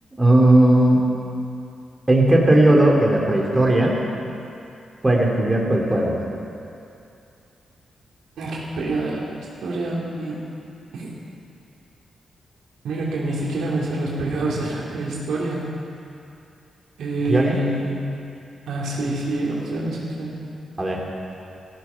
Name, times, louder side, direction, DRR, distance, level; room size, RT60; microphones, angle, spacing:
voice 1, 0.2-1.0 2.1-3.9 5.0-6.2 17.3-17.6 20.8-21.0, right 1 dB, 20° right, -2 dB, 3.2 m, -16 dB
voice 2, 8.4-9.3 9.6-10.5 10.9-11.1 12.8-15.7 17.0-18.0 18.7-20.5, right 2 dB, 80° right, -4 dB, 3.2 m, -26 dB
14.5 x 14.5 x 6.0 m, 2.6 s
cardioid pair, 65°, 0 cm